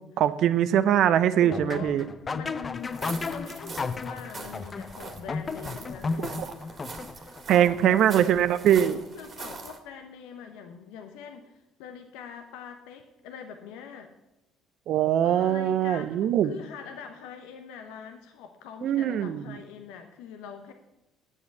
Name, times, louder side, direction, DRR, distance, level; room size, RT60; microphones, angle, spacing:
voice 1, 0.2-2.0 6.2-6.5 7.5-9.0 14.9-16.5 18.8-19.6, right 10 dB, 60° right, 14 dB, 0.7 m, -22 dB
voice 2, 1.4-2.0 2.3-6.8 7.1-8.0 9.1-14.1 15.2-20.7, left 7 dB, 70° left, 5 dB, 0.9 m, -43 dB
sound 1, 1.5-7.4, left 4 dB, 35° left, 0.6 m, -34 dB
sound 2, 2.8-9.8, right 4 dB, 45° right, 2.0 m, -43 dB
8.4 x 7.4 x 8.0 m, 0.93 s
hypercardioid pair, 55°, 0 cm